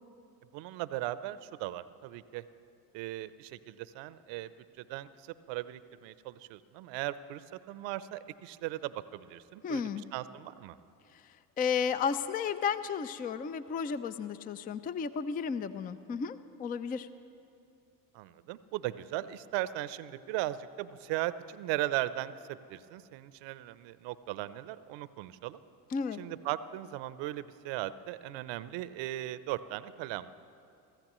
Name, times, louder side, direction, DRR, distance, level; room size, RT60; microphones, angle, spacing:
voice 1, 0.5-2.4 2.9-5.1 5.5-9.8 10.1-10.8 18.1-25.6 26.2-30.3, right 15 dB, 60° right, 15 dB, 0.7 m, -37 dB
voice 2, 9.6-10.1 11.1-17.1 25.9-26.2, left 6 dB, 20° left, 13 dB, 0.4 m, -33 dB
24.5 x 14.5 x 3.1 m, 2.6 s
hypercardioid pair, 70°, 49 cm